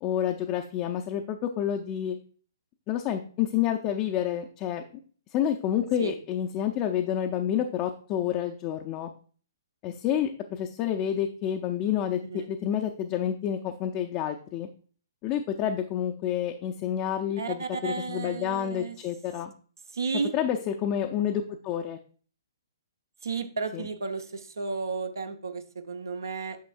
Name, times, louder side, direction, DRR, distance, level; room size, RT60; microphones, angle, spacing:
voice 1, 0.0-2.2 2.9-4.8 5.3-9.1 9.8-14.7 15.2-19.5 20.3-22.0 23.7-23.8, left 10 dB, 25° left, 3 dB, 0.5 m, -29 dB
voice 2, 17.4-19.0 19.9-20.3 23.2-26.6, right 4 dB, 65° right, 7 dB, 0.9 m, -33 dB
9.3 x 6.1 x 2.5 m, 0.43 s
figure-of-eight pair, 120°, 2 cm